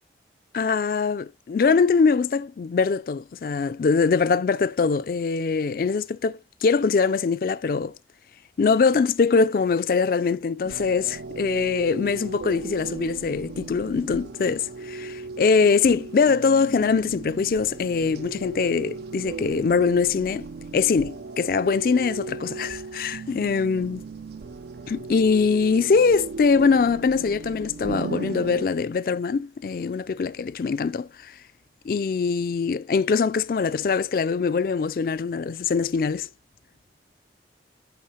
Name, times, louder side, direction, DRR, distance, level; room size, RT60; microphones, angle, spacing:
voice 1, 0.5-7.9 8.6-20.5 20.7-24.0 24.9-31.3 31.9-36.3, left 5 dB, 55° left, 0.3 m, -23 dB
sound 1, 10.6-28.7, right 4 dB, 65° right, 0.4 m, -37 dB
10.5 x 3.7 x 2.8 m
head